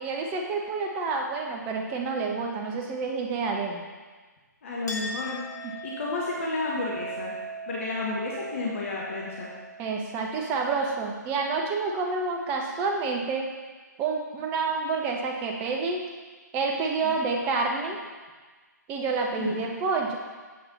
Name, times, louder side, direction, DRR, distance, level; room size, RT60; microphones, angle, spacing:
voice 1, 0.0-3.8 5.6-5.7 9.8-13.5 14.0-16.0 16.5-18.0 18.9-20.2, right 4 dB, 20° right, 1 dB, 0.9 m, -28 dB
voice 2, 4.6-5.4 5.8-7.4 7.7-9.5 17.0-17.2 19.5-19.6, left 3 dB, 45° left, -4 dB, 1.5 m, -31 dB
Chink clink, 4.9-11.9, right 2 dB, 65° left, 1.8 m, -40 dB
8.7 x 5.7 x 4.1 m, 1.4 s
figure-of-eight pair, 135°, 10 cm